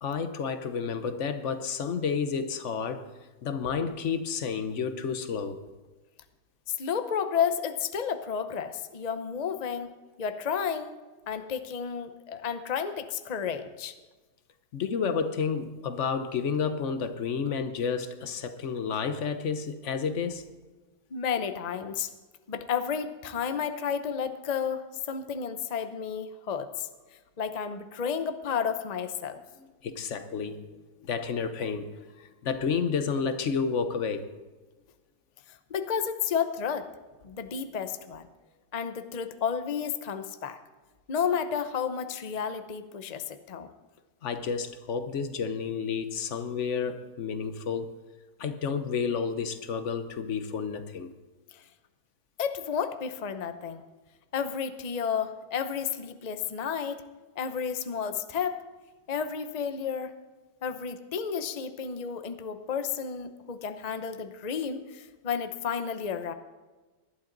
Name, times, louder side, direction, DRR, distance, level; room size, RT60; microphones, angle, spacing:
voice 1, 0.0-3.1 3.4-5.6 14.7-20.5 29.8-30.7 31.0-34.3 44.2-47.9 48.4-51.1, left 6 dB, 50° left, 1.0 m, -31 dB
voice 2, 6.8-9.9 10.2-10.9 11.3-13.9 21.1-22.1 22.5-26.9 27.4-29.4 35.5-36.9 37.2-38.3 38.7-40.6 41.1-43.7 51.5-51.6 52.4-53.8 54.3-57.0 57.4-58.6 59.1-60.1 60.6-66.3, left 7 dB, 70° left, 0.4 m, -31 dB
19.0 x 12.0 x 4.0 m
omnidirectional pair, 1.9 m